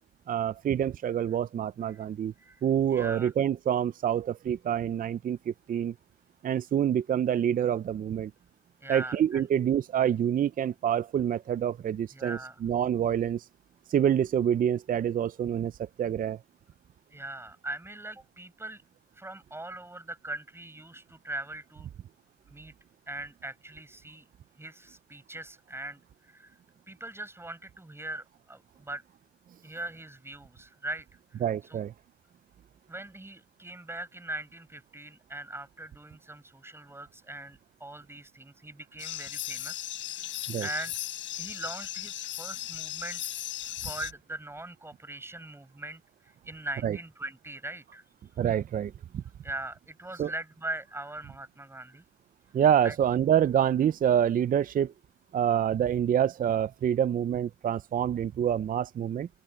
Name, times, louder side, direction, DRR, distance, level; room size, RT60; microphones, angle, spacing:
voice 1, 0.3-2.3 2.6-5.9 6.4-8.3 8.9-13.5 13.9-16.4 31.4-31.9 40.5-40.7 46.8-47.0 48.4-49.2 50.2-50.3 52.5-54.9 55.3-59.3, right 9 dB, 45° right, 0.5 m, -27 dB
voice 2, 2.9-3.3 8.8-9.5 12.1-12.6 17.1-18.8 19.2-21.9 22.5-22.7 23.1-24.2 24.6-26.6 26.9-29.0 29.6-31.1 31.3-31.4 31.7-31.9 32.9-39.9 40.6-40.9 41.4-43.2 43.6-48.0 49.4-52.0 52.8-52.9, right 2 dB, 10° right, 6.1 m, -41 dB
sound 1, 39.0-44.1, left 13 dB, 80° left, 4.4 m, -37 dB
open air
cardioid pair, 90°, 20 cm